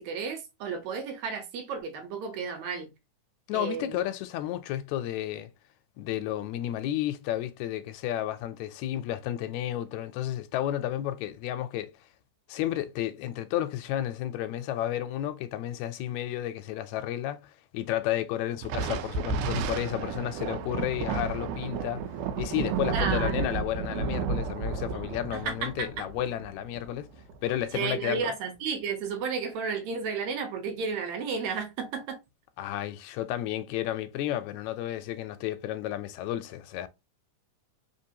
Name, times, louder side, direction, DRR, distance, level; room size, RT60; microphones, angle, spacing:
voice 1, 0.0-2.9 3.5-4.0 22.9-23.5 25.3-26.1 27.7-32.2, right 5 dB, 75° right, 2.0 m, -33 dB
voice 2, 3.5-5.5 6.0-11.9 12.5-22.0 22.4-27.1 27.4-28.3 32.6-36.9, left 12 dB, 80° left, 1.8 m, -32 dB
Thunder, 18.6-27.4, right 5 dB, 90° right, 2.1 m, -32 dB
4.4 x 3.2 x 2.7 m
omnidirectional pair, 3.5 m